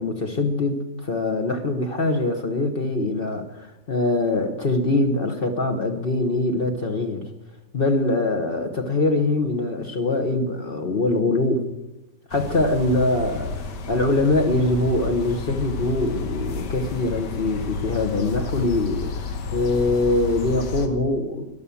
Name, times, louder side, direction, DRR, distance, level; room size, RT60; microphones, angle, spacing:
voice 1, 0.0-7.3 7.7-11.6 12.3-21.4, left 2 dB, 35° left, 5 dB, 1.1 m, -23 dB
sound 1, 12.3-20.9, left 3 dB, 75° left, 1.8 m, -31 dB
12.0 x 11.5 x 7.1 m, 0.95 s
omnidirectional pair, 1.8 m